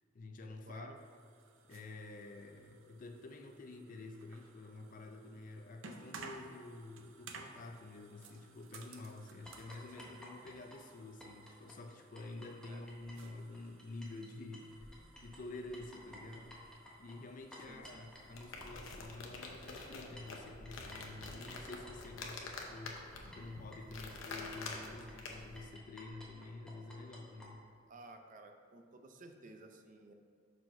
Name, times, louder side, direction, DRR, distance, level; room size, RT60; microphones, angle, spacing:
voice 1, 0.1-0.9 1.6-16.6 17.0-23.0 23.3-27.7, left 2 dB, 40° left, 4 dB, 0.4 m, -49 dB
voice 2, 0.7-1.0 10.0-10.2 12.7-12.8 17.6-18.0 27.9-30.1, right 2 dB, 40° right, 5 dB, 0.5 m, -55 dB
sound 1, 1.0-18.7, right 4 dB, 85° right, 0.6 m, -57 dB
sound 2, 9.5-14.3 14.5-27.5, equal, 5° left, 0.9 m, -55 dB
sound 3, 18.1-25.6, left 3 dB, 80° left, 0.8 m, -47 dB
5.9 x 4.8 x 4.7 m, 2.1 s
head